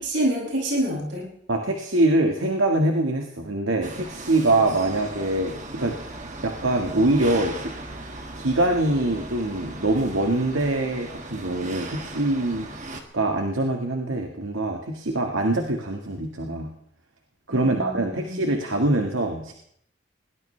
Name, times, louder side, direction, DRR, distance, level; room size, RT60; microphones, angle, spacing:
voice 1, 0.0-1.3 17.5-18.5, right 1 dB, 65° right, -3 dB, 7.5 m, -27 dB
voice 2, 1.5-6.0 6.4-7.7 8.3-12.7 13.1-16.7 17.5-19.5, right 2 dB, 85° right, 3 dB, 1.7 m, -24 dB
sound 1, 3.8-13.0, right 2 dB, 40° right, 1.8 m, -38 dB
21.0 x 19.0 x 3.3 m, 0.70 s
head